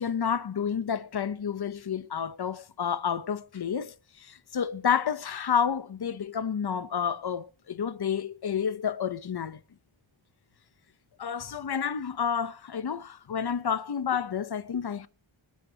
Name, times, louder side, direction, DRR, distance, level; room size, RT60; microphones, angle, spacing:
voice 1, 0.0-9.6 11.2-15.1, left 7 dB, 50° left, 0.9 m, -30 dB
25.0 x 9.9 x 2.9 m
wide cardioid pair, 85°, 50 cm